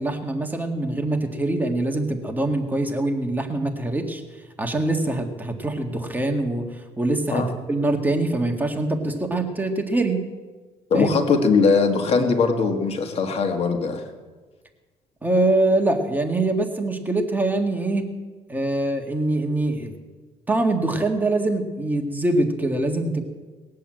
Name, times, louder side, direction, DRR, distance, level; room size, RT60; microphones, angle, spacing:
voice 1, 0.0-4.2 4.6-10.2 10.9-11.1 15.2-18.1 18.5-19.9 20.5-23.2, right 2 dB, 15° right, 3 dB, 1.9 m, -24 dB
voice 2, 10.9-14.1, left 4 dB, 45° left, 5 dB, 1.8 m, -20 dB
20.0 x 8.5 x 7.8 m, 1.3 s
cardioid pair, 100°, 14 cm